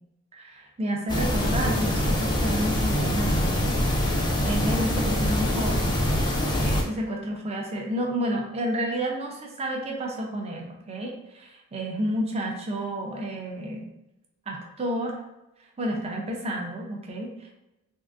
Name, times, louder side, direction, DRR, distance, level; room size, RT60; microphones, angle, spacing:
voice 1, 0.3-6.0 6.6-13.9 14.5-15.2 15.8-17.5, right 1 dB, 30° right, 0 dB, 0.5 m, -30 dB
sound 1, 1.1-6.8, left 1 dB, 20° left, 0.4 m, -24 dB
3.6 x 2.5 x 2.5 m, 0.92 s
head